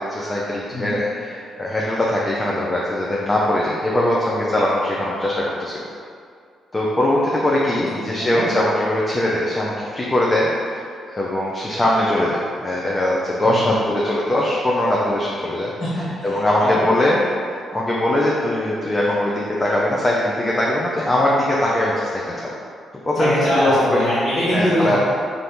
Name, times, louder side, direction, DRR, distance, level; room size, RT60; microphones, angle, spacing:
voice 1, 0.0-5.9 6.7-10.8 11.1-15.7 16.2-17.2 17.5-22.5 23.1-24.1 24.5-25.0, left 1 dB, 25° left, -4 dB, 0.5 m, -21 dB
voice 2, 7.9-8.5 13.4-13.7 15.8-16.9 23.1-25.0, equal, 40° left, -12 dB, 1.0 m, -23 dB
2.8 x 2.6 x 3.5 m, 2.2 s
supercardioid pair, 55°, 0 cm